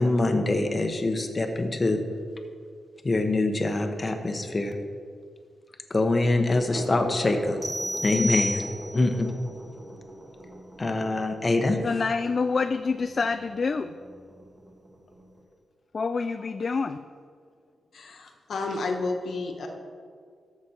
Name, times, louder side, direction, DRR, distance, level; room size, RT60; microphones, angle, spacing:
voice 1, 0.0-2.0 3.0-4.8 5.9-7.6 8.0-8.7 8.9-9.3 10.8-11.8, left 2 dB, 25° left, 5 dB, 0.9 m, -24 dB
sound 1, 6.4-15.4, right 1 dB, 35° right, 2.0 m, -43 dB
sound 2, 7.6-9.1, equal, 15° right, 2.6 m, -30 dB
voice 2, 11.8-13.9 15.9-17.0, left 4 dB, 40° left, 10 dB, 0.3 m, -27 dB
voice 3, 17.9-19.7, left 3 dB, 65° left, 3 dB, 1.3 m, -31 dB
13.5 x 6.0 x 4.3 m, 2.1 s
cardioid pair, 110°, 0 cm